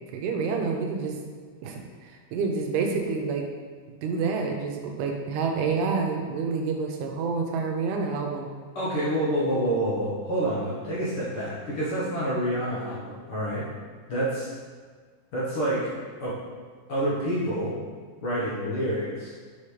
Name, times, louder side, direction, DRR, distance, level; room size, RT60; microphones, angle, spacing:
voice 1, 0.1-1.2 1.6-3.5 4.0-8.5, right 4 dB, 85° right, 2 dB, 2.2 m, -28 dB
voice 2, 8.7-13.7 14.1-14.5 15.3-15.9 16.2-16.4 16.9-17.7 18.2-19.3, right 1 dB, 55° left, -9 dB, 1.6 m, -27 dB
5.6 x 5.6 x 3.3 m, 1.5 s
omnidirectional pair, 3.6 m